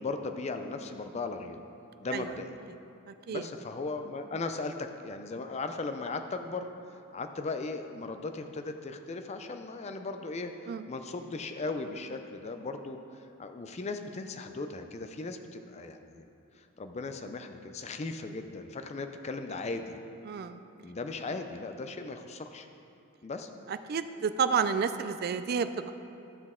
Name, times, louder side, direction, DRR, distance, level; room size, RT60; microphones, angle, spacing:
voice 1, 0.0-1.6 2.0-2.6 3.3-6.7 7.1-16.3 16.6-20.0 20.8-22.7 23.2-23.5, left 3 dB, 30° left, 7 dB, 0.4 m, -37 dB
voice 2, 3.1-3.5 10.7-10.8 20.2-20.6 23.7-25.9, right 6 dB, 45° right, 11 dB, 0.3 m, -30 dB
12.0 x 6.2 x 3.7 m, 2.7 s
head